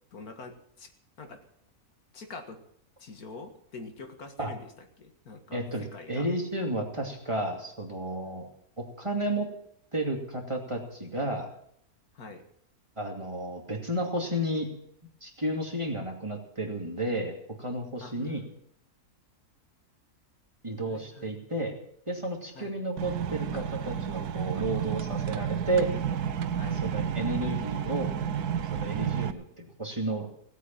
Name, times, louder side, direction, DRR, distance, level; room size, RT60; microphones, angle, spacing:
voice 1, 0.1-0.9 1.2-1.5 2.1-2.6 3.0-6.3 12.1-12.4 18.0-18.6 20.9-21.5 22.5-22.8 26.6-26.8, left 3 dB, 75° left, 6 dB, 2.2 m, -45 dB
voice 2, 5.5-8.5 8.8-9.5 9.9-11.5 13.0-14.7 15.2-18.4 20.6-21.7 22.1-25.9 26.8-28.1 28.7-30.3, right 1 dB, 20° right, 1 dB, 2.6 m, -32 dB
sound 1, 23.0-29.3, right 8 dB, 90° right, 1.4 m, -31 dB
18.0 x 8.4 x 8.9 m, 0.70 s
omnidirectional pair, 1.6 m